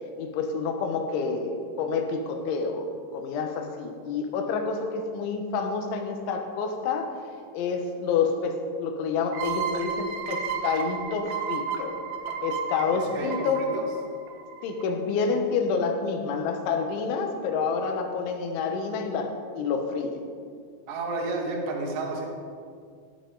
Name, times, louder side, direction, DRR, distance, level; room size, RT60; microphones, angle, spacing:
voice 1, 0.2-7.2 7.5-12.0 12.4-13.7 14.6-20.2, left 5 dB, 85° left, 4 dB, 3.6 m, -28 dB
sound 1, 9.3-14.8, right 6 dB, 75° right, 2.0 m, -33 dB
voice 2, 12.9-13.8 20.9-22.3, right 2 dB, 50° right, 0 dB, 1.9 m, -31 dB
17.5 x 11.0 x 4.0 m, 2.2 s
omnidirectional pair, 5.3 m